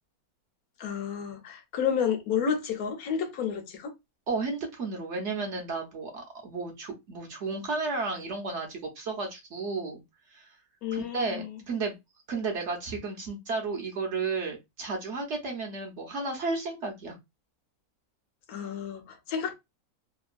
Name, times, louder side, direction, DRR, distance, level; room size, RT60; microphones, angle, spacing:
voice 1, 0.8-3.9 10.8-11.5 18.5-19.5, left 7 dB, 75° left, 1.1 m, -31 dB
voice 2, 4.3-10.0 10.3-10.5 10.9-11.9 12.3-17.2, right 3 dB, 60° right, 0.9 m, -33 dB
3.0 x 2.2 x 2.4 m
omnidirectional pair, 1.6 m